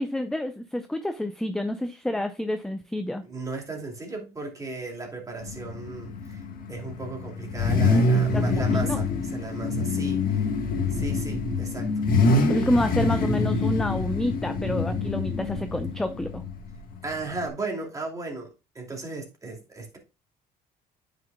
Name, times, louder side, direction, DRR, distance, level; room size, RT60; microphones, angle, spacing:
voice 1, 0.0-3.2 8.1-9.0 12.5-16.4, left 1 dB, 5° left, 0.5 m, -28 dB
voice 2, 3.2-10.5 10.9-12.1 17.0-20.0, right 2 dB, 20° right, 2.6 m, -35 dB
Car / Idling / Accelerating revving vroom, 5.4-17.5, left 3 dB, 55° left, 1.5 m, -26 dB
9.2 x 5.9 x 2.3 m
cardioid pair, 110°, 17 cm